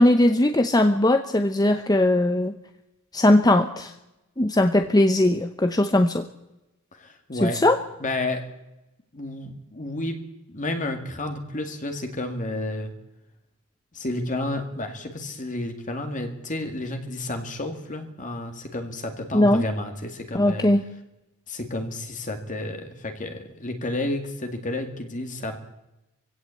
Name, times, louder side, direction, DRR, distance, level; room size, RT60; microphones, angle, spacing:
voice 1, 0.0-2.5 3.1-3.9 4.4-6.2 7.4-7.8 19.3-19.6 20.3-20.8, left 1 dB, 20° left, 8 dB, 0.8 m, -19 dB
voice 2, 6.9-7.6 8.0-8.5 9.1-10.2 10.5-12.9 13.9-20.7 21.5-25.6, left 1 dB, 35° left, 5 dB, 2.1 m, -31 dB
22.5 x 16.5 x 8.4 m, 0.94 s
head